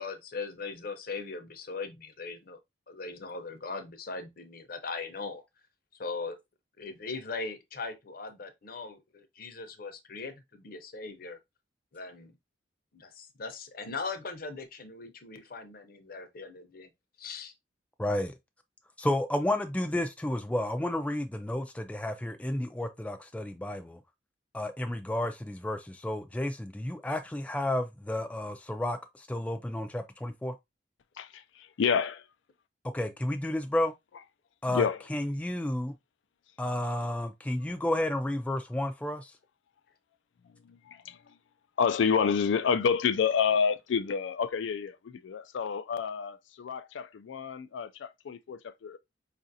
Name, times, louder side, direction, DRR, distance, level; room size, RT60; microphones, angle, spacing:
voice 1, 0.0-2.6 2.9-5.4 6.0-6.4 6.8-11.4 11.9-12.4 12.9-16.9 17.2-17.5, left 4 dB, 55° left, 0.7 m, -39 dB
voice 2, 18.0-18.3 19.0-24.0 24.5-29.0 29.3-30.5 32.9-33.9 34.6-34.9 35.1-35.9 36.6-39.3, left 1 dB, 10° left, 0.3 m, -31 dB
voice 3, 31.2-32.2 34.7-35.0 40.7-41.2 41.8-49.0, left 6 dB, 90° left, 0.4 m, -29 dB
4.9 x 2.5 x 2.6 m
head